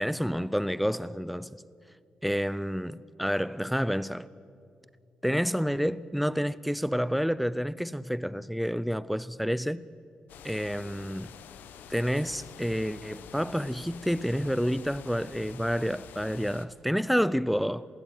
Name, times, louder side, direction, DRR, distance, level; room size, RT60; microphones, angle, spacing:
voice 1, 0.0-1.6 2.2-4.3 5.2-9.9 10.4-11.3 11.9-17.9, equal, ahead, 0.6 m, -29 dB
sound 1, 10.3-16.7, left 9 dB, 80° left, 1.0 m, -48 dB
22.5 x 15.5 x 9.4 m
supercardioid pair, 50°, 3 cm